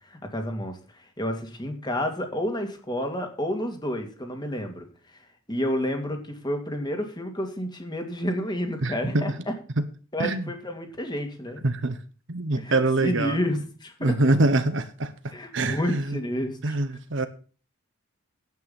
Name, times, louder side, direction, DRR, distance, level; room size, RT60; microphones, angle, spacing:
voice 1, 0.1-4.9 5.5-9.5 10.1-11.6 12.6-14.2 15.3-16.8, equal, 20° left, 2.4 m, -30 dB
voice 2, 8.8-9.2 9.8-9.9 10.2-10.5 11.6-12.0 12.3-13.4 14.0-15.1 15.5-16.2 16.6-17.3, right 2 dB, 60° right, 1.1 m, -24 dB
9.5 x 8.7 x 7.1 m
head